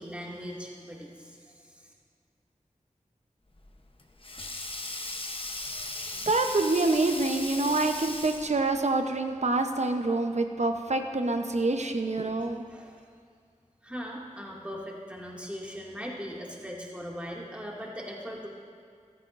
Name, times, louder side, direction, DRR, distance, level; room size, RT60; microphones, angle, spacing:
voice 1, 0.0-1.9 12.7-13.1 13.8-18.5, equal, 10° right, -3 dB, 2.2 m, -40 dB
Sink (filling or washing), 3.6-8.7, left 2 dB, 45° left, 0.9 m, -37 dB
voice 2, 6.2-12.7, right 2 dB, 60° right, 5 dB, 0.8 m, -26 dB
14.5 x 13.5 x 2.6 m, 2.2 s
wide cardioid pair, 50°, 13 cm